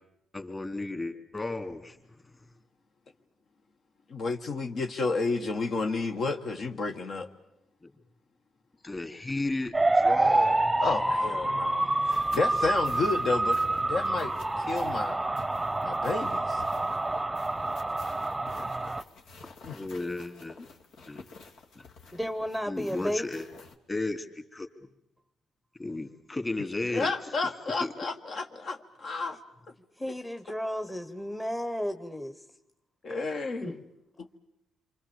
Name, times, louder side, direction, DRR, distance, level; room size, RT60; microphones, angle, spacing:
voice 1, 0.3-2.0 8.8-10.7 19.7-20.6 21.1-21.2 21.8-21.9 22.7-23.5 23.9-24.3 24.5-24.7 25.8-27.1 27.8-27.9, left 2 dB, 25° left, 7 dB, 2.8 m, -34 dB
voice 2, 4.1-7.3 10.8-15.2 15.8-16.6 19.6-19.8 26.8-29.4 33.0-33.8, left 3 dB, 55° left, 4 dB, 1.7 m, -31 dB
sound 1, 9.7-19.0, right 2 dB, 15° right, 0.9 m, -27 dB
sound 2, 12.1-23.8, left 4 dB, 80° left, 2.4 m, -50 dB
voice 3, 22.1-23.3 30.0-32.4 33.1-33.8, equal, 5° left, 7 dB, 1.1 m, -33 dB
27.5 x 24.5 x 7.2 m, 0.87 s
cardioid pair, 90°, 0 cm